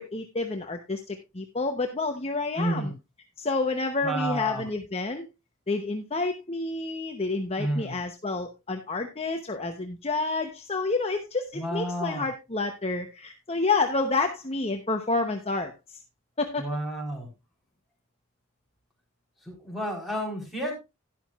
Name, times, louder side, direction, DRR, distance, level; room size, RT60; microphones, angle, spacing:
voice 1, 0.0-2.9 3.4-5.3 5.7-16.0 16.4-16.8, left 3 dB, 30° left, 4 dB, 0.8 m, -29 dB
voice 2, 2.6-2.9 4.0-4.6 7.6-7.9 11.5-12.3 16.6-17.3 19.5-20.8, right 1 dB, ahead, 0 dB, 3.8 m, -30 dB
12.0 x 11.0 x 2.4 m, 0.24 s
head